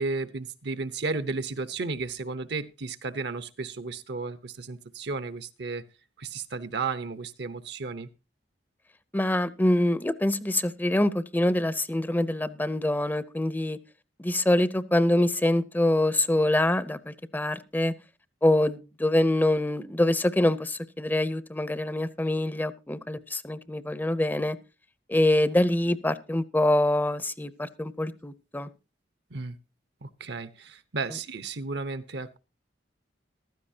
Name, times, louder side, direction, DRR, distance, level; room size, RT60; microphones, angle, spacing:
voice 1, 0.0-5.8 6.2-8.1 29.3-29.6 30.0-32.4, right 4 dB, 70° right, 0.9 m, -33 dB
voice 2, 9.1-13.8 14.2-17.9 18.4-24.6 25.1-28.7 31.1-31.2, left 1 dB, 10° left, 0.6 m, -25 dB
15.0 x 13.0 x 2.8 m
head